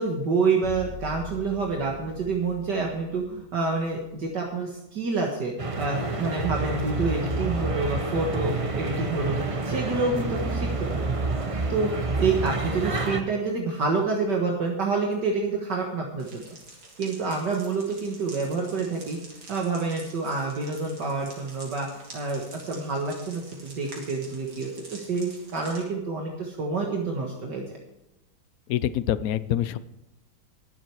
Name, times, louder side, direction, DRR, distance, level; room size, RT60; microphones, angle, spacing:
voice 1, 0.0-9.4 9.6-11.1 11.7-11.9 12.2-16.4 17.0-19.2 19.5-21.9 22.1-27.8, right 4 dB, 60° right, 0 dB, 2.1 m, -28 dB
sound 1, 0.6-4.6, left 4 dB, 35° left, 1.3 m, -43 dB
sound 2, 5.6-13.2, right 3 dB, 30° right, 0.6 m, -28 dB
sound 3, 16.2-25.8, right 2 dB, 80° right, 3.8 m, -47 dB
voice 2, 28.7-29.8, left 11 dB, 65° left, 14 dB, 0.9 m, -25 dB
21.0 x 7.6 x 4.8 m, 0.90 s
omnidirectional pair, 2.1 m